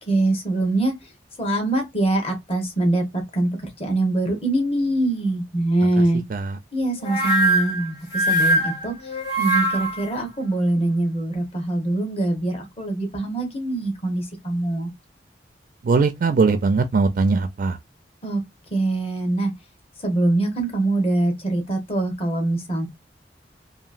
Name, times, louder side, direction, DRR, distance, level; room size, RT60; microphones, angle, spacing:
voice 1, 0.1-1.1 1.4-3.5 3.8-6.2 6.7-14.9 18.2-18.5 18.7-19.5 20.0-22.9, right 2 dB, 35° left, 1.0 m, -23 dB
sound 1, 7.0-10.1, right 1 dB, 90° left, 1.7 m, -22 dB
voice 2, 15.8-17.8, right 4 dB, 50° right, 0.3 m, -20 dB
2.9 x 2.7 x 2.4 m
head